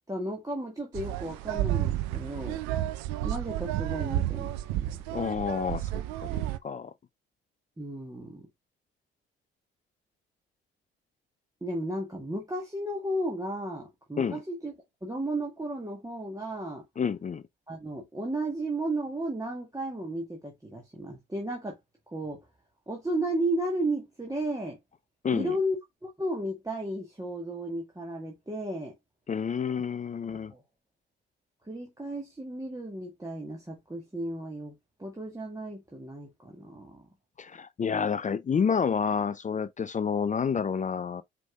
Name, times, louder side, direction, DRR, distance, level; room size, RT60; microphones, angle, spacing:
voice 1, 0.1-2.6 3.2-4.6 7.8-8.5 11.6-14.7 15.0-16.8 17.7-21.8 22.1-22.4 22.9-24.8 25.3-28.9 30.3-30.6 31.6-34.7 35.0-37.0, right 1 dB, 10° right, 1.4 m, -34 dB
sound 1, 0.9-6.6, right 13 dB, 70° right, 0.5 m, -31 dB
voice 2, 5.1-5.9 6.2-6.9 14.2-14.4 17.0-17.4 25.2-25.5 29.3-30.5 37.4-41.2, left 6 dB, 25° left, 0.5 m, -29 dB
5.1 x 3.6 x 2.3 m
figure-of-eight pair, 45°, 30 cm